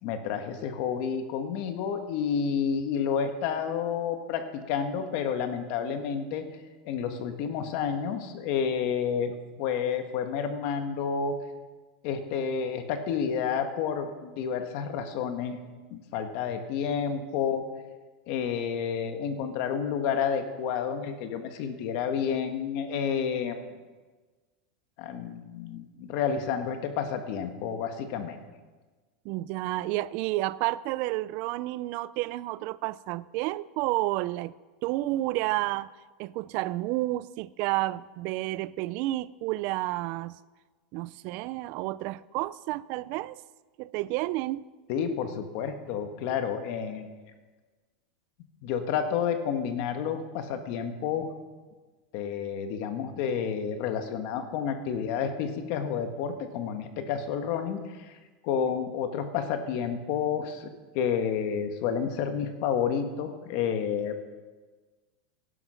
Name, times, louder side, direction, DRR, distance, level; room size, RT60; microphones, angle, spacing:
voice 1, 0.0-6.5 6.8-9.3 9.6-11.4 12.0-15.6 15.9-17.7 18.3-23.6 25.0-28.4 44.9-47.1 48.6-51.3 52.1-58.2 58.4-60.7 60.9-64.2, left 7 dB, 45° left, 1.5 m, -30 dB
voice 2, 29.2-34.5 34.8-35.9 36.2-40.4 40.9-43.4 43.8-44.6, right 17 dB, 40° right, 0.4 m, -30 dB
17.5 x 11.5 x 5.8 m
supercardioid pair, 170°, 4 cm